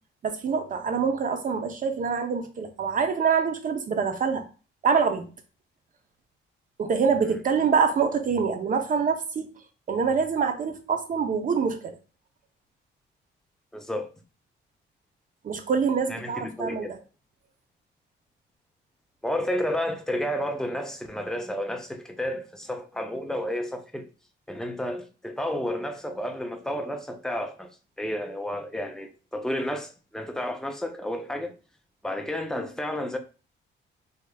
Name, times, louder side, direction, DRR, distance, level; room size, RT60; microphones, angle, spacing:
voice 1, 0.2-4.4 4.8-5.3 6.8-9.5 9.9-12.0 15.4-16.9, right 6 dB, 40° right, 0.6 m, -25 dB
voice 2, 13.7-14.1 16.1-16.9 19.2-24.1 24.5-27.7 28.0-31.5 32.0-33.2, left 1 dB, 5° left, 0.5 m, -31 dB
3.3 x 2.8 x 2.2 m
cardioid pair, 90°, 20 cm